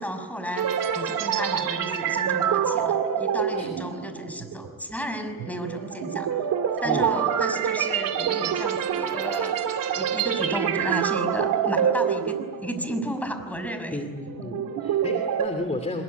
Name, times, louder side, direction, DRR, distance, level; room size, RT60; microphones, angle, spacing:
voice 1, 0.0-6.3 6.8-9.6 9.9-14.0, equal, 5° left, 8 dB, 5.8 m, -33 dB
sound 1, 0.6-13.1 13.4-13.7 14.1-15.5, right 8 dB, 75° right, 2.8 m, -26 dB
voice 2, 13.9-16.0, left 2 dB, 20° left, 7 dB, 3.0 m, -33 dB
25.5 x 22.5 x 9.6 m, 1.5 s
cardioid pair, 95°, 33 cm